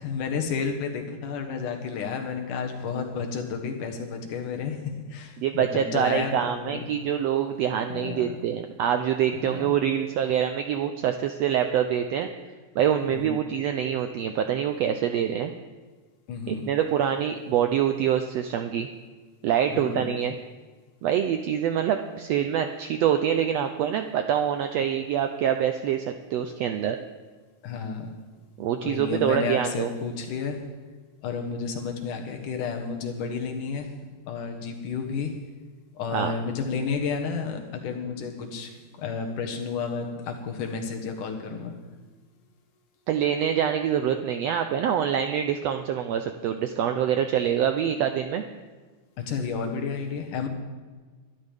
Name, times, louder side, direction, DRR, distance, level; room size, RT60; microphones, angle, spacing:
voice 1, 0.0-6.9 7.9-8.3 9.3-9.8 13.1-13.4 16.3-16.7 19.7-20.1 27.6-28.2 28.8-30.6 31.2-33.9 34.3-35.4 35.9-41.8 49.2-50.5, left 5 dB, 80° left, 4 dB, 2.9 m, -31 dB
voice 2, 5.4-12.3 12.7-15.5 16.5-18.9 19.4-20.4 21.0-27.0 28.6-29.9 36.1-36.3 43.1-48.4, right 9 dB, 85° right, 7 dB, 1.5 m, -25 dB
22.5 x 12.0 x 3.5 m, 1.4 s
omnidirectional pair, 3.7 m